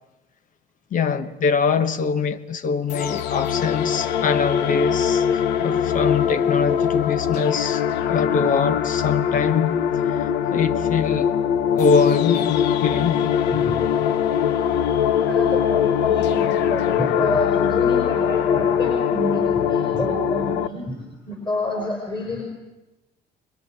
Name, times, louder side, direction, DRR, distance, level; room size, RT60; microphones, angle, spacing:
voice 1, 0.9-7.8 8.1-9.8 10.1-11.4 11.7-13.3, left 5 dB, 50° left, 1.1 m, -23 dB
sound 1, 2.9-20.7, left 8 dB, 85° left, 1.0 m, -22 dB
voice 2, 15.3-21.0 21.3-22.4, left 2 dB, 30° left, 4.8 m, -28 dB
25.0 x 20.0 x 8.9 m
cardioid pair, 110°, 17 cm